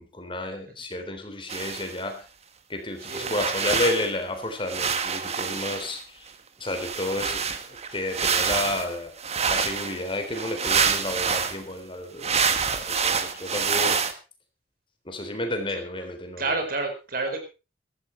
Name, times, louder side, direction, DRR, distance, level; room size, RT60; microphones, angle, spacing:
voice 1, 0.0-2.3 2.7-6.3 6.6-7.4 7.7-14.0 15.1-16.5, left 2 dB, 30° left, 6 dB, 3.5 m, -31 dB
sound 1, 1.5-2.0 3.0-4.1 4.7-6.0 6.7-11.6 12.2-14.1, right 6 dB, 40° right, 1.5 m, -27 dB
voice 2, 3.1-3.7 16.4-17.4, right 3 dB, 55° right, 5 dB, 4.7 m, -29 dB
15.0 x 13.5 x 4.5 m, 0.32 s
head